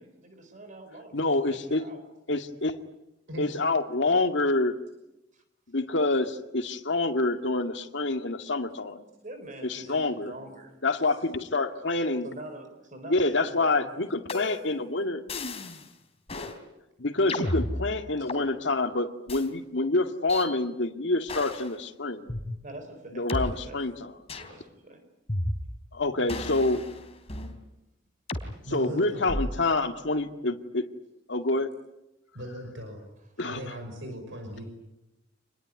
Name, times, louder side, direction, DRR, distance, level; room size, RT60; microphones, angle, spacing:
voice 1, 0.0-1.2 1.5-2.0 5.3-5.4 9.2-10.8 12.2-14.1 22.6-23.9 24.3-25.0, right 1 dB, 45° right, 8 dB, 4.0 m, -45 dB
voice 2, 1.1-1.8 2.3-2.8 3.4-4.8 5.7-9.0 9.7-10.3 10.8-12.3 13.1-15.2 17.0-22.3 23.1-24.1 25.9-26.8 28.7-30.9 31.3-31.7 33.4-33.7, left 2 dB, 65° left, 6 dB, 2.1 m, -27 dB
sound 1, 14.3-14.8 15.3-15.9 16.3-16.6 17.3-18.5 19.3-19.5 20.3-20.5 21.3-21.7 22.3-22.4 23.3-23.4 24.3-24.6 25.3-25.9 26.3-27.6 28.3-28.5 29.3-29.7, left 1 dB, 35° left, 3.5 m, -33 dB
voice 3, 28.6-29.3 32.3-33.0 33.4-34.6, equal, 75° right, 4 dB, 5.9 m, -39 dB
28.0 x 21.0 x 9.6 m, 0.93 s
head